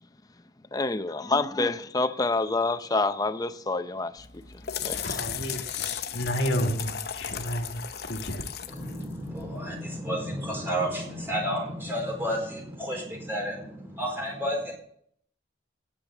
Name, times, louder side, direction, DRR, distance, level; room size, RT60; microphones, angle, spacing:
voice 1, 0.7-4.3 4.8-5.0, left 3 dB, 20° left, 0.6 m, -27 dB
sound 1, 4.2-9.8, left 9 dB, 55° left, 0.7 m, -36 dB
voice 2, 4.8-8.4 8.8-8.9, equal, 75° left, 1.8 m, -31 dB
voice 3, 8.7-14.7, equal, 15° right, 4.4 m, -31 dB
10.0 x 7.5 x 7.0 m
head